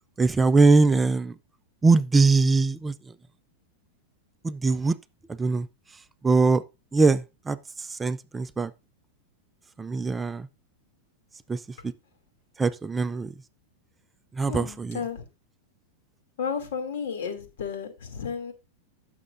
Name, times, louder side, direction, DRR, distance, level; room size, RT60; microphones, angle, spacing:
voice 1, 0.2-1.3 1.8-2.9 4.4-5.0 5.4-5.7 6.2-6.6 6.9-8.7 9.8-10.5 11.5-11.6 12.6-13.3 14.4-15.0, right 3 dB, 10° right, 0.4 m, -22 dB
voice 2, 14.5-15.2 16.4-18.5, left 6 dB, 75° left, 2.6 m, -33 dB
15.5 x 6.4 x 2.6 m
supercardioid pair, 145°, 0 cm